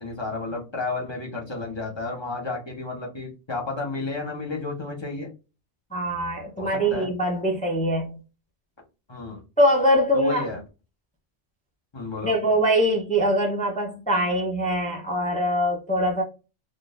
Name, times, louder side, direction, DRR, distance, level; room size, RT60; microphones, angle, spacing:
voice 1, 0.0-5.3 6.6-7.1 9.1-9.4 10.1-10.6 11.9-12.3, left 3 dB, 25° left, 0.9 m, -32 dB
voice 2, 5.9-8.2 9.6-10.5 12.2-16.2, equal, 10° left, 0.5 m, -23 dB
3.6 x 2.4 x 2.4 m
omnidirectional pair, 1.2 m